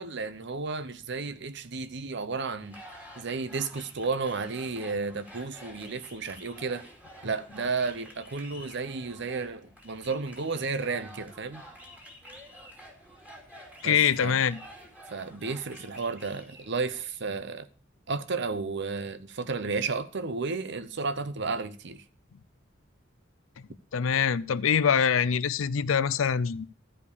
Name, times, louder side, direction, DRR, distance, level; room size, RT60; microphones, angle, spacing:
voice 1, 0.0-2.8 3.2-6.8 7.2-11.6 13.8-14.3 15.1-17.7 18.1-22.0, right 4 dB, 60° right, 0.8 m, -32 dB
sound 1, 2.6-17.0, equal, 5° right, 2.5 m, -49 dB
voice 2, 13.8-14.6 23.9-26.8, left 7 dB, 85° left, 0.5 m, -24 dB
13.5 x 5.1 x 6.8 m
head